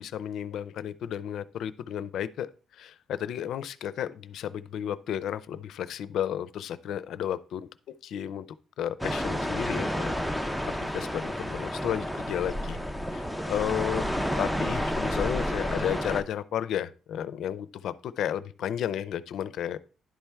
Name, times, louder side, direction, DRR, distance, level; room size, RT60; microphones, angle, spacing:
voice 1, 0.0-8.5 8.8-10.1 10.4-10.5 10.8-12.8 13.1-19.8, left 10 dB, 65° left, 16 dB, 0.4 m, -33 dB
sound 1, 9.0-16.2, equal, ahead, 0.4 m, -30 dB
11.0 x 4.4 x 3.4 m, 0.37 s
cardioid pair, 160°, 0 cm